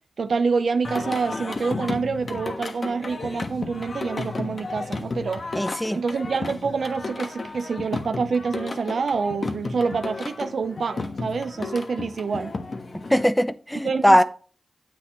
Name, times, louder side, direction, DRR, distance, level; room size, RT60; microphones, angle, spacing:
voice 1, 0.2-5.4 5.9-12.5 13.8-14.2, right 5 dB, 80° right, 0.7 m, -27 dB
Singing, 0.8-13.2, left 3 dB, 55° left, 1.3 m, -33 dB
voice 2, 5.5-6.0 13.1-14.2, equal, 5° left, 0.7 m, -19 dB
9.3 x 7.5 x 3.0 m
cardioid pair, 55°, 0 cm